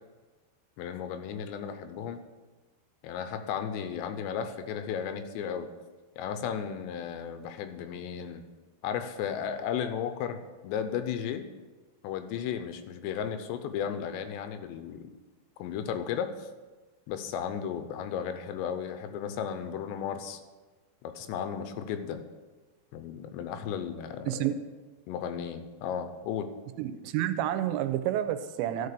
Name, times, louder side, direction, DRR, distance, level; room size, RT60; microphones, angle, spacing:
voice 1, 0.8-2.2 3.0-5.7 6.2-8.5 8.8-11.5 12.0-15.1 15.6-16.5 17.1-20.4 21.0-22.2 22.9-24.4 25.1-26.5, left 8 dB, 80° left, 9 dB, 2.8 m, -34 dB
voice 2, 24.3-24.6 26.8-28.9, right 12 dB, 85° right, 11 dB, 2.8 m, -29 dB
12.5 x 5.3 x 6.7 m, 1.3 s
omnidirectional pair, 5.2 m